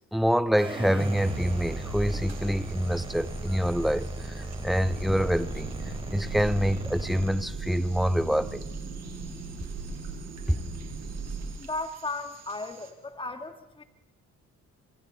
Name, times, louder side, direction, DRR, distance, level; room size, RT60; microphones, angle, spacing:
voice 1, 0.1-5.7 6.1-8.6 10.5-10.6, equal, ahead, 0.7 m, -26 dB
sound 1, 0.6-7.3, right 1 dB, 15° right, 4.1 m, -35 dB
sound 2, 1.0-12.9, right 7 dB, 60° right, 3.5 m, -52 dB
sound 3, 4.8-11.5, right 3 dB, 80° right, 5.9 m, -38 dB
voice 2, 11.6-13.8, left 2 dB, 15° left, 2.0 m, -35 dB
27.0 x 24.0 x 4.1 m
cardioid pair, 90°, 30 cm